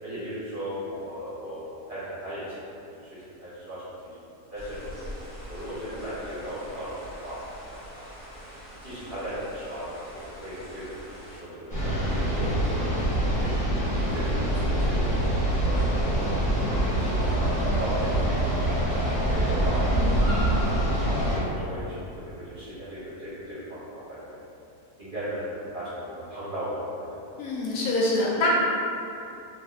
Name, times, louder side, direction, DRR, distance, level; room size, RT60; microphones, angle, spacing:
voice 1, 0.0-4.1 4.5-4.8 5.5-7.4 7.9-8.1 8.8-13.5 14.1-15.3 15.6-18.6 19.3-20.2 21.2-24.4 25.0-27.2, equal, 45° right, -11 dB, 0.8 m, -37 dB
sound 1, 4.5-11.4, equal, 45° left, 0.9 m, -43 dB
sound 2, 11.7-21.4, right 1 dB, 5° left, 0.8 m, -25 dB
voice 2, 19.9-20.5 27.4-28.5, left 2 dB, 80° left, -5 dB, 1.1 m, -26 dB
3.4 x 2.5 x 2.3 m, 2.7 s
omnidirectional pair, 1.6 m